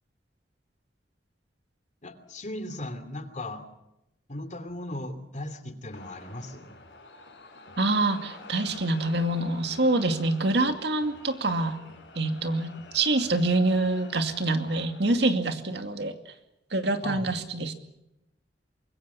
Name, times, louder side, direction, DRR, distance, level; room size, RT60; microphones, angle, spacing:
voice 1, 2.0-3.7 4.3-6.7 17.0-17.3, left 1 dB, 45° left, 9 dB, 2.7 m, -37 dB
sound 1, 5.9-15.3, left 2 dB, 90° left, 5.5 m, -48 dB
voice 2, 7.8-11.8 12.2-16.1 16.7-17.7, right 2 dB, 70° right, 7 dB, 2.3 m, -26 dB
24.5 x 22.5 x 7.0 m, 0.89 s
head